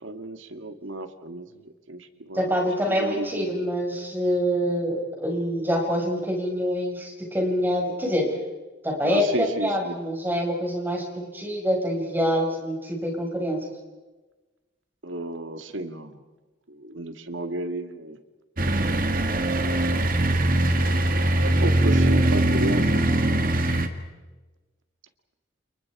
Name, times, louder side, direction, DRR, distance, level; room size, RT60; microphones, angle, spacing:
voice 1, 0.0-2.5 2.9-3.6 9.0-10.0 15.0-16.2 16.7-18.2 21.4-23.4, right 1 dB, 85° right, 8 dB, 2.0 m, -33 dB
voice 2, 2.3-8.2 8.8-13.6, equal, 10° right, 1 dB, 5.6 m, -26 dB
sound 1, 18.6-23.9, right 1 dB, 45° right, 2.1 m, -21 dB
29.5 x 29.5 x 4.8 m, 1.2 s
head